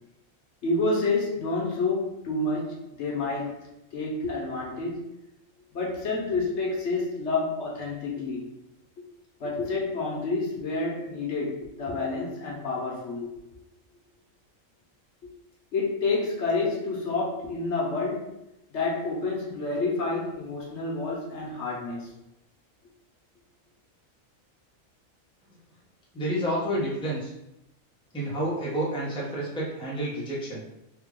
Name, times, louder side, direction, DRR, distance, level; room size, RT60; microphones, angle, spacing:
voice 1, 0.6-3.6 3.9-5.0 5.7-8.5 9.4-13.3 15.7-18.3 18.7-22.1, left 3 dB, 60° left, -3 dB, 1.0 m, -29 dB
voice 2, 26.1-27.3 28.1-30.7, right 1 dB, 5° left, -5 dB, 0.6 m, -29 dB
3.4 x 2.2 x 3.6 m, 0.87 s
omnidirectional pair, 1.4 m